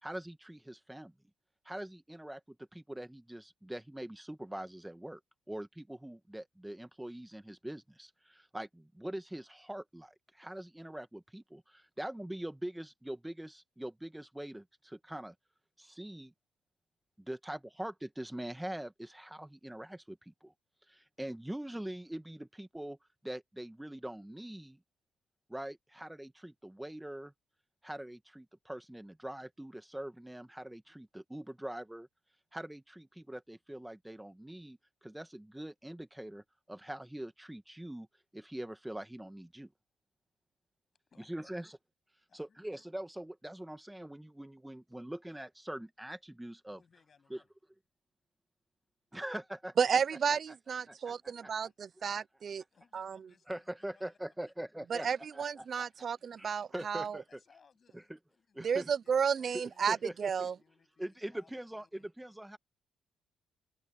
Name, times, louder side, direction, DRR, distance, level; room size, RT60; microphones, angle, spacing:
voice 1, 0.0-1.1 1.6-5.2 5.5-15.3 15.8-16.3 17.2-20.5 20.9-23.0 23.2-24.8 25.5-27.3 27.8-32.1 32.5-38.1 38.3-39.7 41.3-41.8 42.3-46.8 47.3-47.4 49.1-49.7 50.9-51.5 52.0-52.1 53.5-55.1 55.3-55.9 56.4-57.4 58.6-58.9 59.5-60.5 61.0-62.6, right 1 dB, 5° right, 1.7 m, -43 dB
voice 2, 41.1-41.5 42.3-42.6 46.7-47.5 51.6-51.8 52.7-54.2 54.4-54.5 54.9-55.0 55.9-56.4 57.3-58.7 59.0-62.1, left 6 dB, 45° left, 8.0 m, -67 dB
voice 3, 49.8-52.6 52.9-53.2 54.9-57.2 58.6-60.5, right 7 dB, 50° right, 0.3 m, -32 dB
open air
cardioid pair, 90°, 0 cm